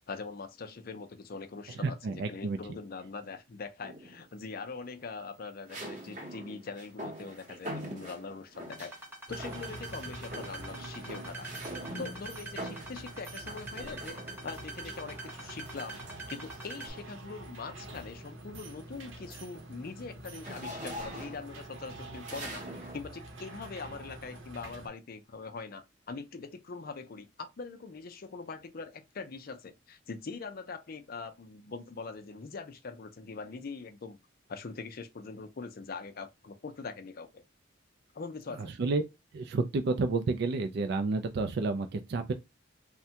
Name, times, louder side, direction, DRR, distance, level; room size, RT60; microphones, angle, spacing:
voice 1, 0.1-8.9 9.3-11.5 12.0-16.0 16.3-22.6 22.9-34.2 34.5-37.4 38.1-38.7, left 4 dB, 50° left, 0.5 m, -42 dB
voice 2, 1.8-2.6 38.6-39.0 39.3-42.3, right 3 dB, 55° right, 0.3 m, -30 dB
sound 1, 3.8-4.4 5.7-9.0 9.4-9.9 10.2-14.6 15.8-17.2 17.7-17.9 18.3-23.1, right 1 dB, 40° right, 0.8 m, -44 dB
sound 2, 8.7-16.9, right 2 dB, 10° right, 0.8 m, -44 dB
sound 3, 9.3-24.9, right 1 dB, 75° right, 0.8 m, -46 dB
3.3 x 2.1 x 2.8 m
head